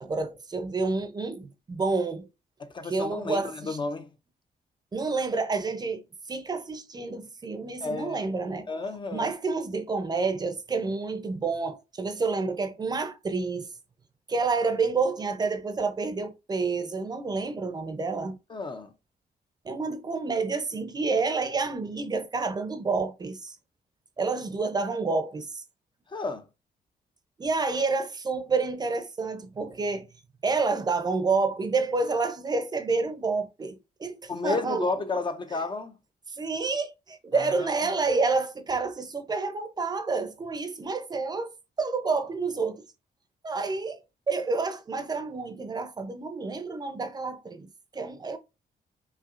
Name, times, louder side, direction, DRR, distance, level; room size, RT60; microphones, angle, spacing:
voice 1, 0.0-2.3 2.8-3.8 4.9-8.7 9.1-13.7 14.3-18.4 19.6-23.6 24.2-25.6 27.4-30.1 30.4-34.9 36.4-42.9 43.4-44.0 44.3-48.4, right 4 dB, 25° right, 0.5 m, -29 dB
voice 2, 2.6-4.1 7.8-8.2 8.7-9.3 18.5-18.9 26.1-26.5 34.3-36.0 37.3-37.7, left 3 dB, 30° left, 0.4 m, -32 dB
5.5 x 2.7 x 2.4 m
wide cardioid pair, 175°, 17 cm